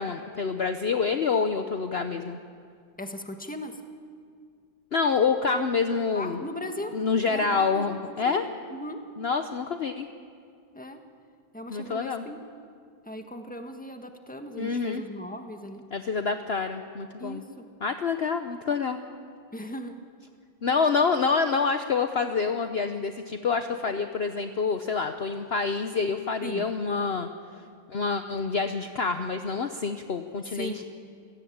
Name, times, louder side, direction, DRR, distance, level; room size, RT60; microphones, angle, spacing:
voice 1, 0.0-2.4 4.9-6.4 6.9-8.4 9.2-10.1 11.7-12.3 14.6-15.0 15.9-17.4 17.8-19.0 20.6-27.3 27.9-30.8, left 5 dB, 55° left, 7 dB, 0.7 m, -27 dB
voice 2, 3.0-3.8 6.1-7.0 7.3-7.9 8.2-8.4 8.7-9.0 10.7-11.0 11.5-12.4 13.0-15.9 17.2-17.7 19.5-20.0 20.7-20.8 26.4-26.7 30.5-30.8, left 1 dB, 5° left, 5 dB, 1.4 m, -38 dB
27.0 x 17.0 x 8.8 m, 2.2 s
omnidirectional pair, 2.2 m